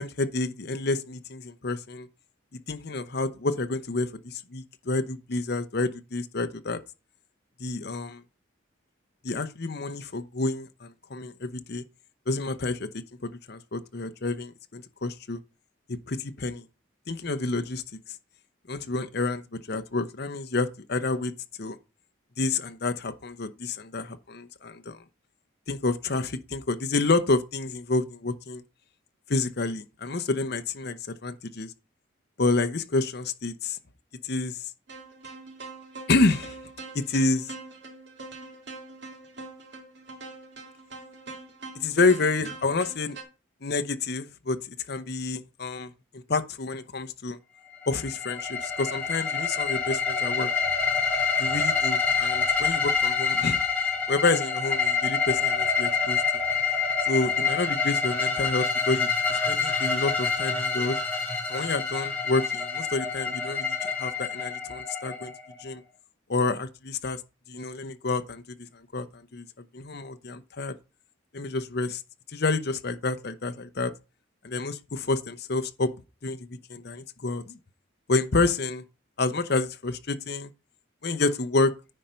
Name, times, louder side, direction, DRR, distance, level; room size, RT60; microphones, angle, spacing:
voice 1, 0.0-2.1 2.7-6.8 7.6-8.2 9.2-11.8 12.3-12.9 13.2-15.4 16.1-16.6 17.1-17.8 18.7-21.3 21.6-21.8 22.4-25.0 25.7-28.6 29.3-31.7 32.4-33.8 34.2-34.7 36.1-36.6 36.9-37.5 41.7-43.2 43.6-47.4 47.9-50.5 51.4-53.6 54.1-56.2 57.1-61.0 61.5-65.3 65.6-65.8 66.3-67.2 67.5-68.4 68.7-69.5 69.7-70.8 71.3-72.0 72.3-73.9 74.4-75.9 76.2-77.6 78.1-78.8 79.2-80.5 81.0-81.7, left 3 dB, 50° left, 0.8 m, -29 dB
sound 1, 34.9-43.2, right 3 dB, 55° right, 2.0 m, -43 dB
sound 2, 47.8-65.7, left 5 dB, 5° left, 2.9 m, -27 dB
9.9 x 4.4 x 5.2 m
head